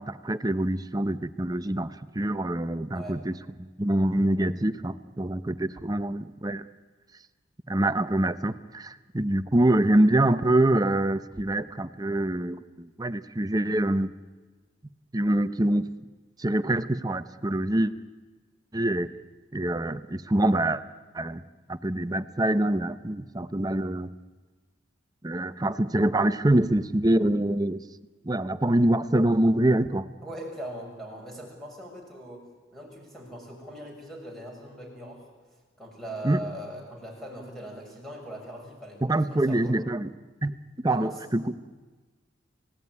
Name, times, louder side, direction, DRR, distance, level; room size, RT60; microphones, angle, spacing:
voice 1, 0.0-6.6 7.7-14.1 15.1-15.9 16.4-17.9 18.7-19.1 19.5-20.8 21.1-21.4 21.7-24.1 25.2-27.8 28.2-30.1 36.2-36.4 39.0-40.1 40.4-41.5, right 1 dB, 20° right, 11 dB, 0.8 m, -25 dB
voice 2, 30.2-32.4 32.7-35.3 35.8-39.8 40.9-41.1, right 1 dB, ahead, 0 dB, 6.5 m, -40 dB
30.0 x 17.0 x 9.7 m, 1.3 s
head